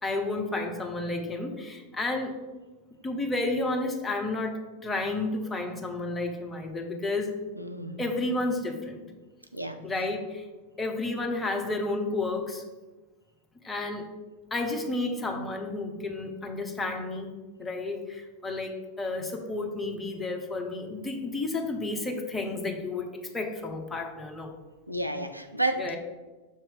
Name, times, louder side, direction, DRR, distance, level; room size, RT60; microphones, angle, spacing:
voice 1, 0.0-2.4 3.0-7.3 8.0-9.0 9.8-10.4 10.8-12.6 13.6-14.1 14.5-17.3 17.6-24.5 25.7-26.0, left 2 dB, 10° left, 1 dB, 0.9 m, -31 dB
voice 2, 7.6-8.0 9.5-9.8 24.9-26.0, right 1 dB, 90° right, 6 dB, 0.4 m, -31 dB
6.5 x 3.0 x 5.2 m, 1.2 s
figure-of-eight pair, 90°, 0 cm